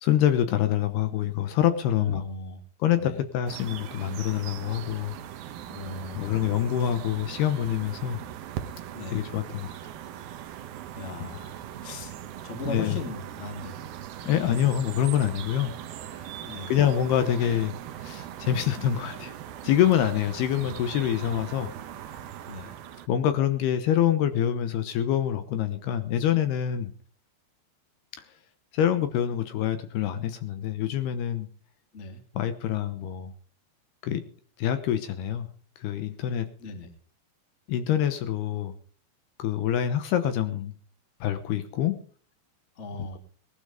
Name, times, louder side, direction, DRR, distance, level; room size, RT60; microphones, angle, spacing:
voice 1, 0.0-2.2 2.8-5.1 6.1-8.2 9.1-9.8 12.7-13.0 14.3-15.7 16.7-17.7 18.0-19.3 19.6-21.7 23.1-26.9 28.7-31.5 32.4-33.3 34.0-34.2 34.6-35.5 35.8-36.5 37.7-38.7 39.4-40.7 41.2-42.0, left 10 dB, 70° left, 10 dB, 2.8 m, -26 dB
voice 2, 1.9-2.6 3.0-3.2 5.7-6.4 8.9-9.2 10.9-12.1 12.4-13.8 14.2-14.5 16.4-16.8 20.6-21.0 22.5-22.7 31.9-32.2 36.6-36.9 42.7-43.2, left 2 dB, 25° left, 6 dB, 1.6 m, -38 dB
sound 1, 3.5-23.1, right 11 dB, 70° right, 2.6 m, -40 dB
19.0 x 12.5 x 5.0 m, 0.43 s
omnidirectional pair, 5.3 m